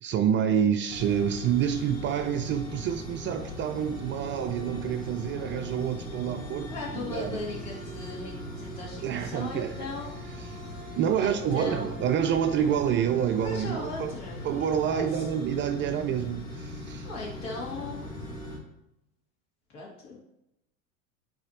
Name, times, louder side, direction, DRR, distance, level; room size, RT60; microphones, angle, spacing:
voice 1, 0.0-6.7 7.0-7.4 9.0-9.8 10.5-10.6 11.0-14.2 14.4-17.1, right 8 dB, 30° right, 0.4 m, -28 dB
sound 1, 0.9-18.6, left 1 dB, 20° left, 2.4 m, -39 dB
voice 2, 6.5-10.7 11.1-12.0 13.3-15.3 17.0-18.3 19.7-20.2, left 3 dB, 60° left, 2.6 m, -39 dB
9.6 x 4.1 x 2.9 m
hypercardioid pair, 85°, 41 cm